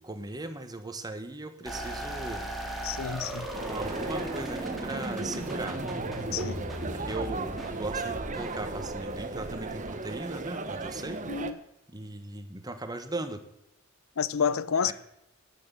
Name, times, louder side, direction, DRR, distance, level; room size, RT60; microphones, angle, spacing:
voice 1, 0.0-2.4 3.5-5.8 6.8-11.5 11.9-13.4 14.8-14.9, right 2 dB, 20° right, 1.1 m, -38 dB
sound 1, 1.7-10.1, equal, ahead, 2.1 m, -38 dB
voice 2, 2.8-3.5 6.3-6.6 11.3-11.5 14.2-14.9, left 7 dB, 65° left, 0.5 m, -29 dB
sound 2, 3.5-11.5, right 3 dB, 35° right, 0.9 m, -36 dB
11.5 x 9.1 x 6.9 m
head